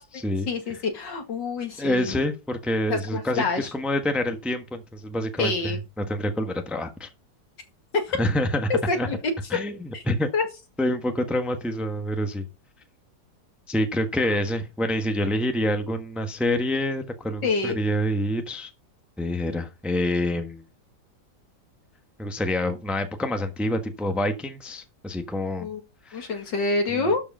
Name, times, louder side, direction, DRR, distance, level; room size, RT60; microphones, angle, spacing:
voice 1, 0.0-2.2 2.9-3.7 5.4-5.8 7.9-8.2 8.7-9.1 9.9-10.0 10.3-10.5 17.4-17.8 25.6-25.8 26.1-27.2, left 3 dB, 75° left, 2.8 m, -27 dB
voice 2, 1.8-7.1 8.2-8.7 9.0-9.1 9.5-9.8 10.1-10.3 10.8-12.4 13.7-18.7 19.2-20.6 22.2-25.7 26.0-26.3 26.9-27.1, left 1 dB, ahead, 1.1 m, -27 dB
12.5 x 4.9 x 5.5 m
omnidirectional pair, 1.9 m